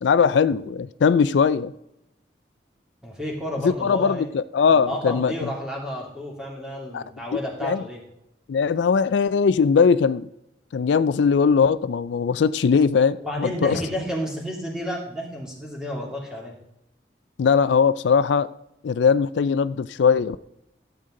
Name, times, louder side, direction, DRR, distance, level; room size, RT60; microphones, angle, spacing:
voice 1, 0.0-1.7 3.6-5.3 6.9-7.0 7.6-7.8 8.5-10.3 10.7-13.8 17.4-18.5 18.8-20.4, left 6 dB, 80° left, 0.4 m, -20 dB
voice 2, 3.0-4.3 4.7-8.0 13.2-16.5, equal, 5° right, 2.6 m, -31 dB
13.5 x 8.0 x 3.8 m
head